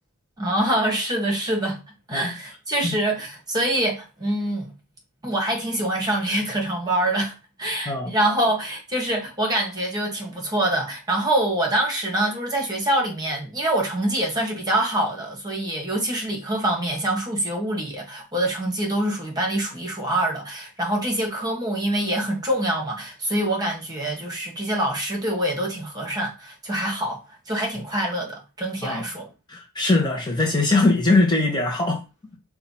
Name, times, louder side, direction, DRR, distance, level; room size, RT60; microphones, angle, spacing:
voice 1, 0.4-1.8 2.1-4.7 5.2-29.3, right 1 dB, 20° right, 1.3 m, -25 dB
voice 2, 7.9-8.2 28.8-29.0 29.5-32.0, left 2 dB, 20° left, 0.9 m, -21 dB
5.4 x 2.3 x 4.2 m
head